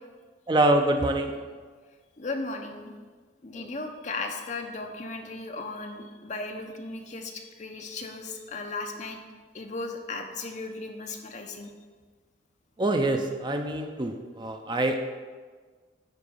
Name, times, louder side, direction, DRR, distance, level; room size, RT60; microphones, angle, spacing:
voice 1, 0.5-1.4 3.5-3.7 12.8-15.0, right 1 dB, 25° right, 5 dB, 0.5 m, -25 dB
voice 2, 2.2-2.9 3.4-9.2 9.5-11.7, left 3 dB, 40° left, 4 dB, 0.7 m, -36 dB
9.9 x 3.9 x 5.4 m, 1.5 s
head